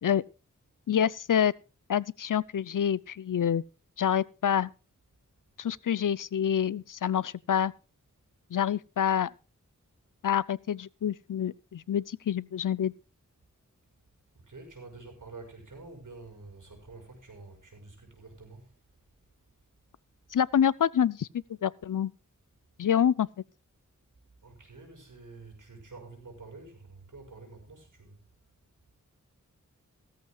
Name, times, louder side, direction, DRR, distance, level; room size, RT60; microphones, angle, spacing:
voice 1, 0.9-1.5 1.9-3.6 4.0-4.7 5.6-7.7 8.5-9.3 10.2-12.9 20.3-22.1 22.8-23.3, left 9 dB, 75° left, 0.6 m, -27 dB
voice 2, 14.3-18.8 24.4-28.2, right 3 dB, 70° right, 6.1 m, -48 dB
17.0 x 14.0 x 2.3 m
wide cardioid pair, 70°, 32 cm